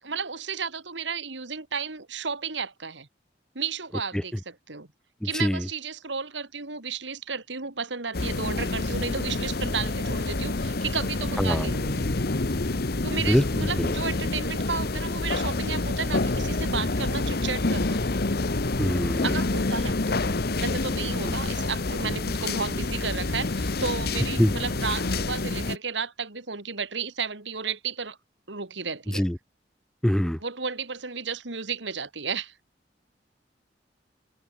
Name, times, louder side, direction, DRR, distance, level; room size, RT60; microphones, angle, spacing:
voice 1, 0.0-3.1 3.5-4.9 5.2-12.1 13.0-18.0 19.2-28.2 28.5-29.3 30.4-32.6, right 5 dB, 75° right, 2.4 m, -33 dB
sound 1, 8.1-25.8, left 2 dB, 55° left, 1.1 m, -27 dB
voice 2, 11.4-11.7 13.3-13.4 13.8-13.9 18.8-19.3 24.4-24.5 29.1-29.3 30.0-30.4, equal, 5° left, 0.3 m, -23 dB
head